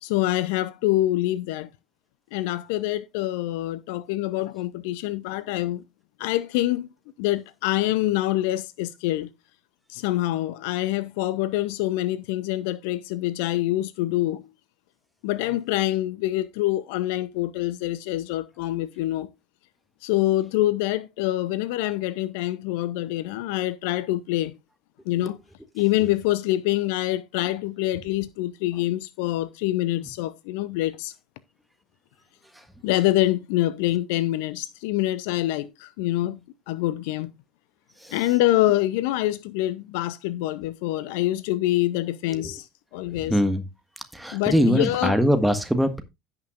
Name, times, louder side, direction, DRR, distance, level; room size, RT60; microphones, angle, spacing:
voice 1, 0.0-1.7 2.3-5.8 6.2-6.9 7.2-9.3 9.9-14.4 15.2-19.3 20.0-24.6 25.1-25.4 25.7-31.1 32.8-36.4 36.7-37.3 38.1-42.7 42.9-43.4 44.3-45.2, left 15 dB, 60° left, 0.5 m, -25 dB
voice 2, 43.0-43.6 44.1-46.0, equal, 5° right, 1.6 m, -23 dB
16.0 x 5.9 x 2.5 m
figure-of-eight pair, 65°, 0 cm